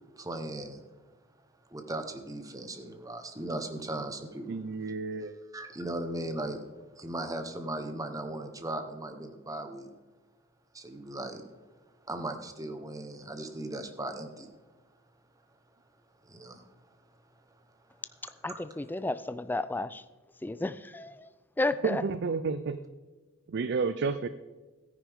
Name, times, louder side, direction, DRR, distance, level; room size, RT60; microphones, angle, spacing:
voice 1, 0.2-0.8 1.7-4.6 5.5-6.6 7.0-9.9 10.7-11.4 12.1-14.5 16.2-16.7 18.5-18.6, right 1 dB, 15° right, 7 dB, 1.0 m, -37 dB
voice 2, 4.5-5.4 21.8-22.8 23.5-24.3, right 4 dB, 55° right, 12 dB, 0.4 m, -31 dB
voice 3, 18.4-20.0 20.4-21.3 21.6-22.0, left 2 dB, 10° left, 13 dB, 0.3 m, -32 dB
13.5 x 10.0 x 3.6 m, 1.3 s
head